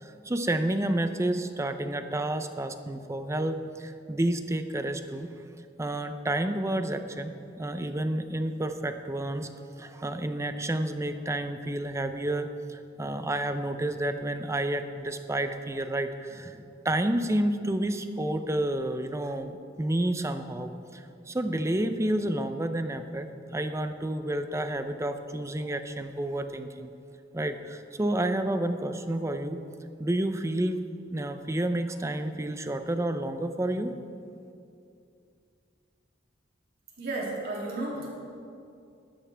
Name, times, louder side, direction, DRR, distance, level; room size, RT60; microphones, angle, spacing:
voice 1, 0.0-5.3 5.8-9.5 9.8-26.9 27.3-29.6 30.0-30.8 31.1-34.0, right 1 dB, 15° right, 9 dB, 0.5 m, -30 dB
voice 2, 37.0-38.1, right 2 dB, 55° right, -4 dB, 2.9 m, -33 dB
13.5 x 13.0 x 3.4 m, 2.5 s
head